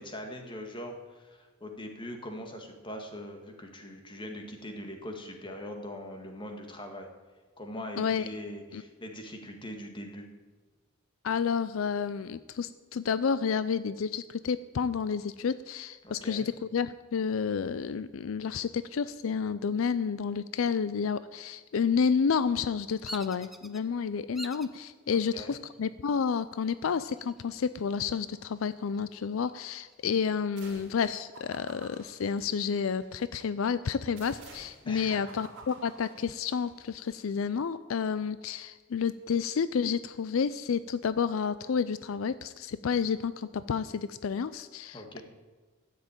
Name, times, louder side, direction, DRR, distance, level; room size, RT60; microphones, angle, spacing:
voice 1, 0.0-7.1 7.6-10.3 16.0-16.4 25.1-25.6 34.9-35.3 44.9-45.2, left 1 dB, 25° left, 3 dB, 1.9 m, -41 dB
voice 2, 11.2-45.2, left 6 dB, 75° left, 15 dB, 0.4 m, -30 dB
Bird vocalization bird call bird song, 23.0-23.8 24.3-24.8 25.4-25.9 27.0-27.8 28.1-28.2 28.7-30.1, equal, ahead, 0.6 m, -45 dB
sound 1, 30.6-31.0 31.3-33.1 34.2-36.8, right 3 dB, 60° right, 2.9 m, -51 dB
13.0 x 7.5 x 8.9 m, 1.3 s
head